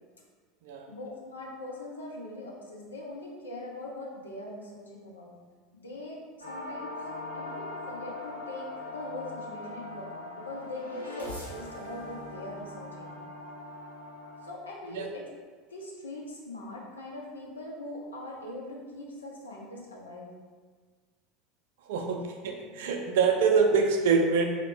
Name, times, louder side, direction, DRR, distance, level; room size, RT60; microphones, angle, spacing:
voice 1, 0.9-5.3 5.7-7.0 7.3-13.2 14.4-15.3 15.7-20.3 22.7-22.8 23.4-23.7, left 1 dB, 75° left, -2 dB, 0.7 m, -41 dB
sound 1, 6.4-14.5, left 2 dB, 85° right, 0.8 m, -41 dB
voice 2, 21.9-24.4, right 5 dB, 60° right, 3 dB, 0.4 m, -25 dB
4.0 x 2.7 x 3.4 m, 1.5 s
figure-of-eight pair, 75°, 0 cm